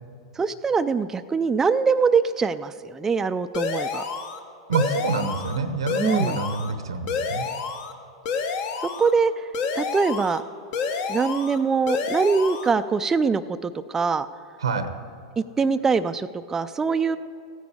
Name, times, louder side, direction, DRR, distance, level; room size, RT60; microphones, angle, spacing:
voice 1, 0.4-4.0 6.0-6.4 9.0-9.3 9.7-10.4 11.1-14.3 15.4-17.2, right 5 dB, 15° right, 10 dB, 0.4 m, -23 dB
sound 1, 3.5-4.4 4.7-5.6 5.9-6.7 7.1-7.9 8.3-9.1 9.5-10.4 10.7-11.6 11.9-12.7, left 5 dB, 55° left, 1.1 m, -29 dB
voice 2, 4.7-7.5 14.6-14.9, right 4 dB, 90° right, 10 dB, 1.0 m, -26 dB
15.5 x 9.4 x 4.9 m, 2.6 s
hypercardioid pair, 100°, 3 cm